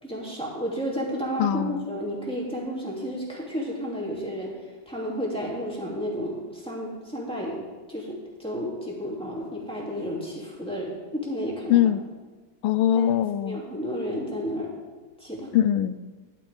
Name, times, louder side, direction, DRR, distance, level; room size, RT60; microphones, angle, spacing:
voice 1, 0.0-4.5 4.9-7.6 7.9-11.8 13.0-13.1 13.4-14.7 15.2-15.5, equal, 5° left, -4 dB, 2.7 m, -32 dB
voice 2, 1.4-1.8 11.7-12.0 12.6-13.6 15.5-16.0, left 11 dB, 85° left, 15 dB, 1.4 m, -22 dB
13.0 x 12.0 x 3.6 m, 1.3 s
omnidirectional pair, 2.1 m